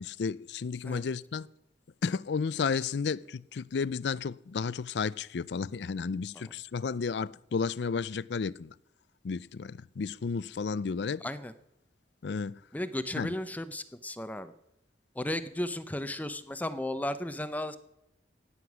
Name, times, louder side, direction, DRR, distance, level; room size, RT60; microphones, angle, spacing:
voice 1, 0.0-1.5 2.0-8.7 9.2-11.2 12.2-12.6 13.2-13.3, left 5 dB, 70° left, 0.4 m, -32 dB
voice 2, 11.2-11.5 12.7-14.5 15.1-17.8, left 1 dB, 10° left, 0.6 m, -35 dB
16.5 x 9.7 x 6.1 m
head